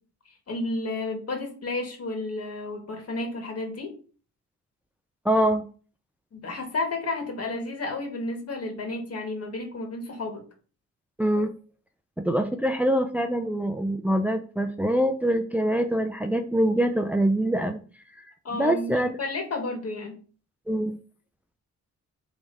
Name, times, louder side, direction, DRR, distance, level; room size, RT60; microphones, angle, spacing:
voice 1, 0.5-3.9 6.3-10.4 18.4-20.2, left 2 dB, 55° left, 3 dB, 2.1 m, -32 dB
voice 2, 5.2-5.6 11.2-11.5 12.2-17.8 18.2-18.3 18.5-19.1 20.7-21.0, right 1 dB, 5° right, 6 dB, 0.6 m, -24 dB
4.9 x 3.6 x 5.4 m, 0.39 s
cardioid pair, 75°, 30 cm